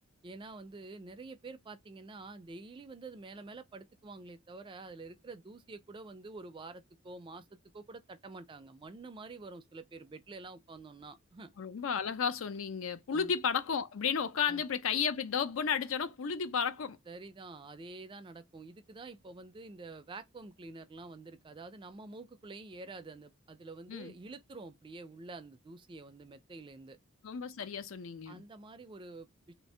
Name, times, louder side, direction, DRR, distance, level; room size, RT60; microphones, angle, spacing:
voice 1, 0.2-11.5 13.1-13.3 14.5-14.6 17.1-27.0 28.3-29.5, right 3 dB, 25° right, 0.4 m, -48 dB
voice 2, 11.6-17.0 23.9-24.1 27.2-28.4, left 6 dB, 75° left, 0.5 m, -33 dB
2.7 x 2.7 x 3.1 m
head